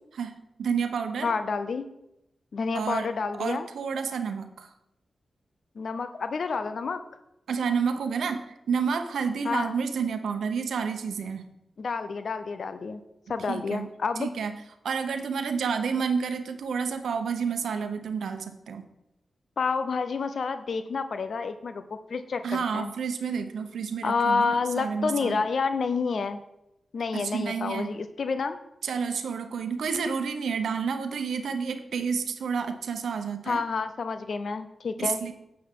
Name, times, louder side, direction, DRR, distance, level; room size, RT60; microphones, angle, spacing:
voice 1, 0.6-1.3 2.7-3.1 3.3-4.7 7.5-11.4 13.5-13.9 14.2-14.5 14.8-18.8 22.4-25.4 27.1-27.9 28.8-33.6 35.0-35.3, right 6 dB, 85° right, 8 dB, 0.8 m, -30 dB
voice 2, 1.2-1.9 2.5-3.7 5.8-7.0 9.4-9.8 11.8-13.0 13.3-14.3 19.6-21.8 22.1-22.9 24.0-26.4 26.9-28.6 33.5-35.2, left 4 dB, 70° left, 10 dB, 0.6 m, -29 dB
9.9 x 7.7 x 3.7 m, 0.85 s
cardioid pair, 45°, 0 cm